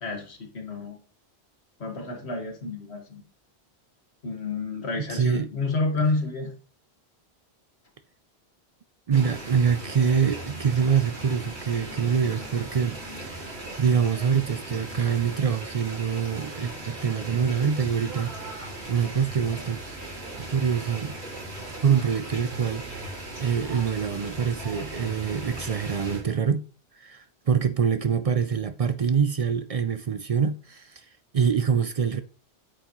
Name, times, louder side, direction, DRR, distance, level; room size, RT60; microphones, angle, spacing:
voice 1, 0.0-1.0 1.8-3.2 4.2-6.5, left 3 dB, 85° left, 1.9 m, -30 dB
voice 2, 5.1-5.5 9.1-19.8 20.4-21.2 21.8-23.0 23.4-26.6 26.9-31.1 31.3-32.2, right 7 dB, 50° right, 0.4 m, -25 dB
sound 1, 9.1-26.2, right 2 dB, 80° right, 3.5 m, -38 dB
8.8 x 7.1 x 3.0 m
omnidirectional pair, 1.1 m